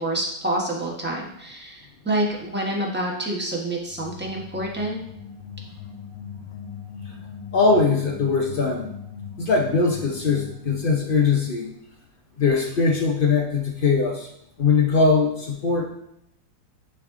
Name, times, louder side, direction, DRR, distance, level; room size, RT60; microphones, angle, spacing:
voice 1, 0.0-5.0, right 1 dB, 10° right, -2 dB, 0.9 m, -27 dB
sound 1, 3.9-11.2, left 7 dB, 90° left, 1.4 m, -39 dB
voice 2, 7.5-8.9 9.4-11.7 12.4-14.3 14.6-15.9, left 4 dB, 65° left, 2 dB, 0.5 m, -21 dB
9.8 x 3.3 x 3.7 m, 0.79 s
omnidirectional pair, 1.9 m